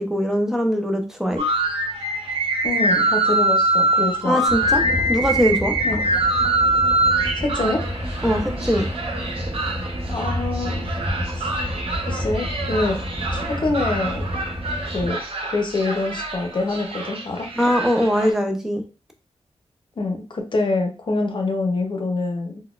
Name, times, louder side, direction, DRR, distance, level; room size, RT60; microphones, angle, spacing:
voice 1, 0.0-1.4 4.2-4.8 5.1-5.7 8.2-8.9 17.5-18.8, equal, 5° right, 4 dB, 0.5 m, -21 dB
sound 1, 1.4-18.3, right 2 dB, 60° right, 0.7 m, -24 dB
voice 2, 2.6-4.4 5.8-6.0 7.4-7.9 10.1-11.0 11.4-11.5 12.1-13.0 13.3-14.3 14.9-15.2 15.5-17.5 20.0-22.6, left 2 dB, 50° left, 3 dB, 0.7 m, -25 dB
sound 2, 4.5-15.1, equal, 30° right, 0.9 m, -29 dB
3.9 x 2.2 x 2.4 m, 0.34 s
wide cardioid pair, 130°, 11 cm